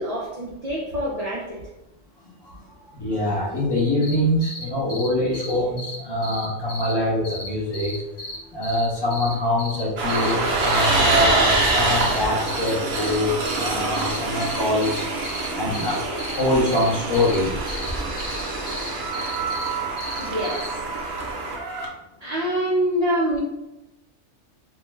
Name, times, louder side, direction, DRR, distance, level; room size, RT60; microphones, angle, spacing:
voice 1, 0.0-1.6 20.2-20.8 22.2-23.4, equal, 80° right, -4 dB, 0.3 m, -25 dB
voice 2, 2.9-7.9 8.5-15.1 15.5-17.7, left 1 dB, 30° left, -5 dB, 0.5 m, -24 dB
sound 1, 4.0-4.1 4.4-4.6 4.9-5.1 5.3-5.5 5.8-5.9 6.2-6.9 7.2-7.5 7.7-8.4 8.6-9.8 10.1-10.3 10.6-10.8 11.1-12.2 12.5-13.2 13.4-13.7 13.9-15.5 15.7-17.4 17.7-17.9 18.2-18.4 18.7-19.7 20.0-20.7, left 1 dB, 65° left, 1.0 m, -35 dB
Train, 10.0-21.9, right 3 dB, 60° right, 0.8 m, -26 dB
sound 2, 10.4-12.3 17.1-19.1, right 1 dB, 20° right, 0.5 m, -26 dB
2.5 x 2.2 x 3.1 m, 0.96 s
omnidirectional pair, 1.3 m